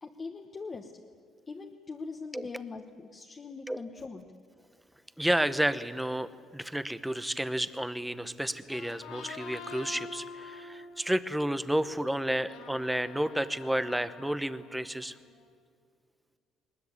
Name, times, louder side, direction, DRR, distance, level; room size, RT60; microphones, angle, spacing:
voice 1, 0.0-1.0 1.5-4.2, left 4 dB, 20° left, 3 dB, 1.1 m, -42 dB
voice 2, 5.2-15.1, right 1 dB, 5° right, 13 dB, 0.8 m, -31 dB
sound 1, 8.5-15.4, left 4 dB, 75° left, 3.9 m, -47 dB
21.0 x 20.0 x 9.6 m, 2.1 s
cardioid pair, 170°, 0 cm